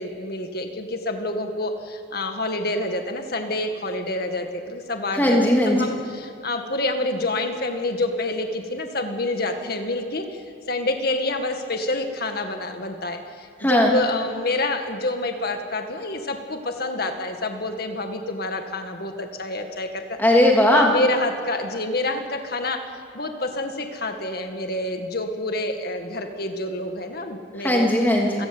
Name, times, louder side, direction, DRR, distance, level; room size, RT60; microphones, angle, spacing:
voice 1, 0.0-20.2 20.7-22.8 23.1-27.9 28.4-28.5, left 2 dB, 50° left, 5 dB, 1.9 m, -28 dB
voice 2, 5.2-5.9 13.6-14.0 20.2-20.9 27.6-28.5, left 1 dB, 10° left, -1 dB, 3.0 m, -18 dB
29.5 x 17.0 x 8.0 m, 2.4 s
head